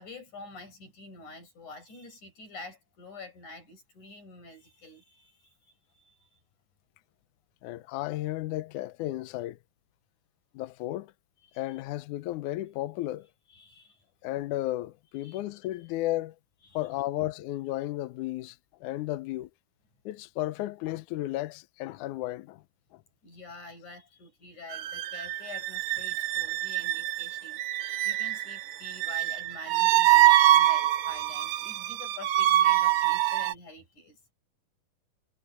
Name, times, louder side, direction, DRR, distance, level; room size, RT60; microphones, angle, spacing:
voice 1, 0.0-6.4 11.4-11.8 13.5-14.0 15.2-15.4 15.8-15.9 16.6-16.8 23.2-34.2, left 3 dB, 55° left, 9.4 m, -48 dB
voice 2, 7.6-9.6 10.5-11.1 11.6-13.3 14.2-16.3 16.7-19.5 20.1-22.6, left 15 dB, 75° left, 1.9 m, -33 dB
sound 1, 24.7-33.5, right 14 dB, 85° right, 1.5 m, -25 dB
omnidirectional pair, 4.2 m